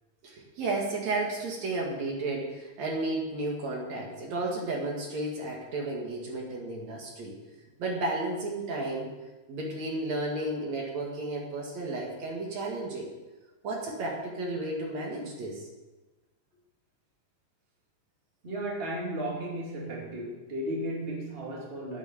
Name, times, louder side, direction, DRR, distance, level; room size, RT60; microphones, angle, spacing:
voice 1, 0.2-7.4 7.8-9.1 9.5-13.1 13.6-15.7, right 2 dB, 65° right, -1 dB, 3.2 m, -33 dB
voice 2, 18.4-22.0, right 1 dB, 20° right, -3 dB, 2.4 m, -34 dB
10.0 x 9.3 x 6.8 m, 1.2 s
omnidirectional pair, 3.5 m